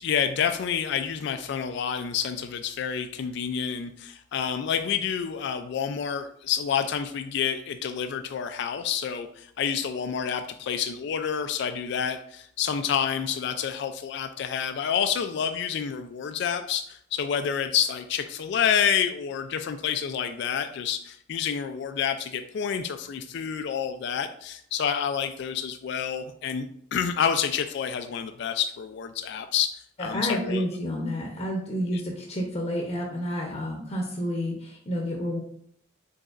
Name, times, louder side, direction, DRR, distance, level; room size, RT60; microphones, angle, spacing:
voice 1, 0.0-30.6 31.9-32.0, left 8 dB, 60° left, 8 dB, 0.3 m, -28 dB
voice 2, 30.0-35.4, equal, 35° left, 0 dB, 0.7 m, -30 dB
5.1 x 4.0 x 2.4 m, 0.66 s
head